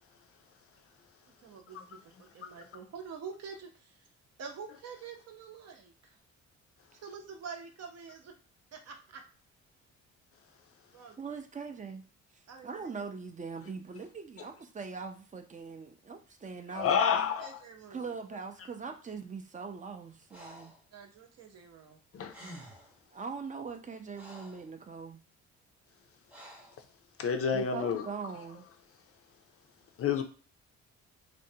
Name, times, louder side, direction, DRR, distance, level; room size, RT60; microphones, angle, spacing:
voice 1, 1.4-3.7 4.4-5.9 7.0-8.3 8.7-9.2 10.9-11.4 12.5-12.8 17.4-18.1 20.9-22.0, right 6 dB, 55° right, 0.7 m, -46 dB
voice 2, 11.2-12.0 12.6-16.9 17.9-20.7 23.1-25.2 27.5-28.7, right 5 dB, 25° right, 0.5 m, -41 dB
voice 3, 16.7-17.6 22.1-22.3 27.2-28.1 30.0-30.2, left 7 dB, 50° left, 0.4 m, -29 dB
Breathing, 20.3-20.8 22.0-22.1 22.3-23.0 23.7-24.7 26.3-26.8, equal, 5° right, 0.8 m, -50 dB
2.5 x 2.1 x 2.7 m
cardioid pair, 90°, 30 cm